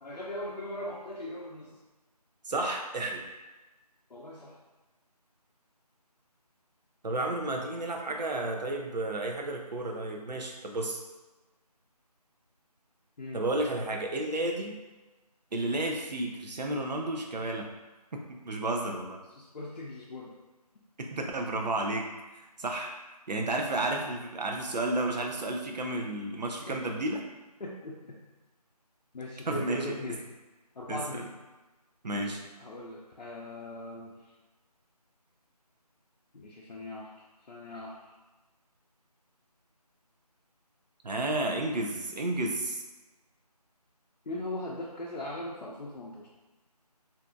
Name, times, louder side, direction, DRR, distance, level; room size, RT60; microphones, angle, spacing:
voice 1, 0.0-1.7 4.1-4.6 13.2-13.4 19.4-20.3 26.7-26.8 27.6-28.2 29.1-30.2 30.8-31.3 32.1-32.3 32.6-34.1 36.3-37.1 37.5-38.0 44.3-46.3, left 1 dB, 90° left, -5 dB, 0.5 m, -39 dB
voice 2, 2.5-3.2 7.0-11.0 13.3-14.8 15.5-17.7 18.1-19.2 21.0-22.1 22.6-22.9 23.3-27.3 29.5-30.2 30.9-31.2 32.0-32.4 41.0-42.8, right 2 dB, 90° right, 2 dB, 0.5 m, -32 dB
2.6 x 2.3 x 2.5 m, 1.2 s
figure-of-eight pair, 175°, 21 cm